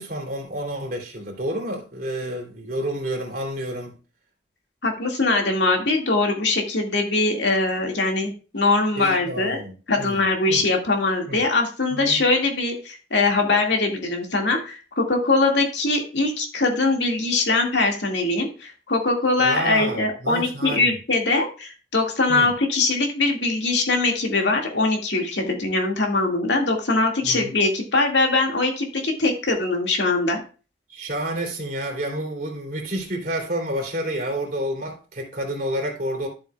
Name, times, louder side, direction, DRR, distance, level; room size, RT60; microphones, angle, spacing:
voice 1, 0.0-4.0 9.0-10.6 11.3-11.4 11.9-12.2 19.4-21.0 22.3-22.5 27.2-27.5 30.9-36.3, right 1 dB, 50° right, 3.1 m, -29 dB
voice 2, 4.8-9.6 9.9-30.4, left 3 dB, 80° left, 2.1 m, -22 dB
13.0 x 7.3 x 2.4 m
head